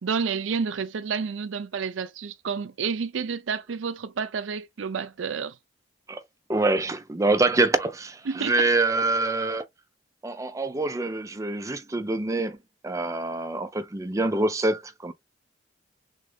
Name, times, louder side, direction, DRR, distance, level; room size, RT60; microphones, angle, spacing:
voice 1, 0.0-5.5 8.3-8.5, right 5 dB, 75° right, 0.5 m, -30 dB
voice 2, 6.5-9.6 10.2-12.6 12.8-15.1, right 2 dB, 15° right, 0.4 m, -25 dB
3.6 x 2.6 x 3.2 m
head